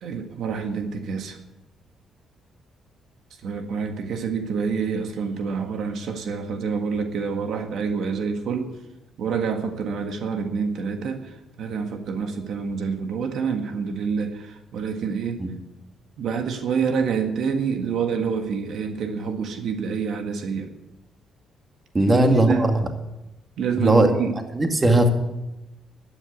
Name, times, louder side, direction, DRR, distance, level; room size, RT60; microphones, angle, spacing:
voice 1, 0.0-1.4 3.4-8.7 9.2-15.4 16.2-20.7 22.0-22.7 23.6-24.4, right 6 dB, 70° right, 5 dB, 1.7 m, -27 dB
voice 2, 21.9-22.9 23.8-24.1 24.5-25.1, right 1 dB, 25° right, 4 dB, 2.2 m, -18 dB
12.0 x 9.9 x 9.5 m, 0.98 s
cardioid pair, 90°, 0 cm